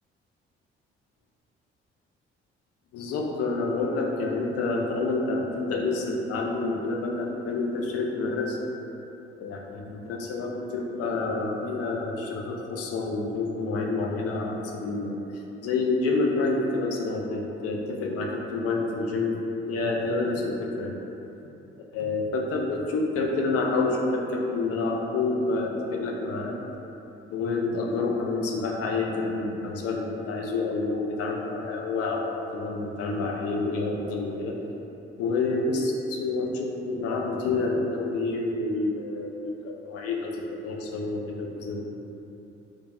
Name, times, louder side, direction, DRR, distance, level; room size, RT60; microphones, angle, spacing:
voice 1, 2.9-8.6 9.4-15.2 15.6-19.4 19.7-21.0 21.9-26.6 27.3-34.6 35.2-41.8, left 3 dB, 50° left, 0 dB, 0.4 m, -28 dB
3.1 x 2.1 x 2.6 m, 2.9 s
figure-of-eight pair, 40°, 32 cm